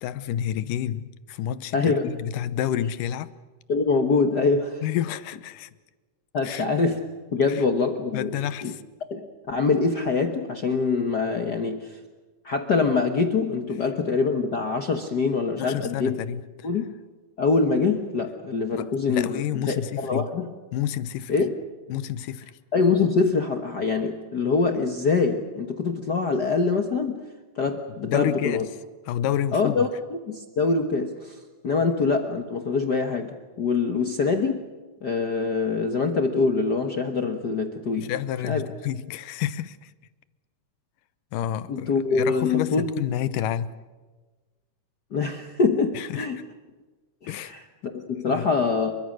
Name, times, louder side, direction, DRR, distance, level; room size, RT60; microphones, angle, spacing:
voice 1, 0.0-3.3 4.8-5.7 6.4-6.7 7.5-7.6 8.1-8.8 15.6-16.7 18.7-20.3 20.7-21.4 21.9-22.5 28.0-28.6 29.1-29.8 31.8-31.9 38.0-39.9 41.3-43.7 45.9-46.3 47.3-47.6 48.3-48.5, left 11 dB, 85° left, 2.5 m, -29 dB
voice 2, 1.7-2.1 3.7-4.8 6.3-7.0 7.3-8.3 8.6-8.7 9.1-12.0 12.4-16.2 16.6-16.8 17.4-20.5 21.3-21.5 22.7-27.2 27.6-28.7 29.5-34.6 35.0-38.1 38.4-38.7 41.7-42.9 45.1-46.4 47.2-49.0, left 4 dB, 55° left, 1.1 m, -24 dB
28.5 x 23.5 x 6.4 m
omnidirectional pair, 3.7 m